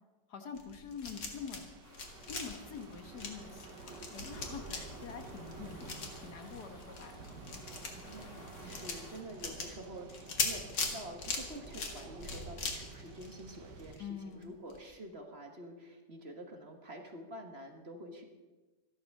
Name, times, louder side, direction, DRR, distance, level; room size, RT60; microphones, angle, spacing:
voice 1, 0.3-1.7 2.3-7.6 14.0-14.6, left 6 dB, 65° left, 6 dB, 1.9 m, -46 dB
sound 1, 0.6-1.6 1.9-14.0 14.3-14.4 14.7-14.8, left 4 dB, 85° left, 2.7 m, -40 dB
Thunder / Rain, 1.0-13.9, right 3 dB, 80° right, 2.0 m, -50 dB
sound 2, 1.8-9.2, left 1 dB, 45° left, 2.6 m, -57 dB
voice 2, 8.1-18.2, right 1 dB, 40° right, 4 dB, 1.6 m, -48 dB
14.0 x 12.0 x 6.6 m, 1.2 s
omnidirectional pair, 1.9 m